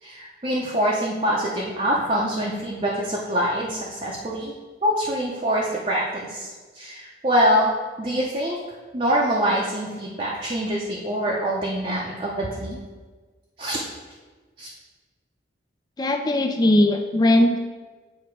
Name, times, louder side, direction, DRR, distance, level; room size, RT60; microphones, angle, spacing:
voice 1, 0.0-4.5 4.8-6.5 6.7-7.7 8.0-12.8 13.6-13.8 14.6-14.7, equal, 30° right, -4 dB, 0.7 m, -24 dB
voice 2, 16.0-17.6, left 1 dB, 20° left, 5 dB, 0.3 m, -19 dB
8.4 x 2.9 x 4.6 m, 1.4 s
head